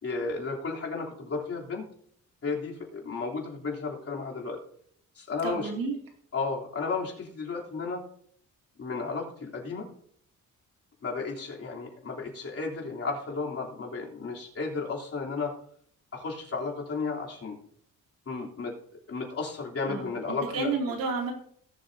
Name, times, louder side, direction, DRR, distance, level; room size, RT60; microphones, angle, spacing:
voice 1, 0.0-1.8 2.4-4.6 5.1-5.7 6.3-8.0 8.8-9.9 11.0-15.5 16.1-17.6 18.2-18.7 19.1-20.7, left 4 dB, 45° left, -3 dB, 3.4 m, -33 dB
voice 2, 5.4-6.0 19.9-20.1 20.5-21.3, right 4 dB, 85° right, 1 dB, 2.7 m, -30 dB
18.5 x 7.5 x 2.8 m, 0.64 s
cardioid pair, 95°, 33 cm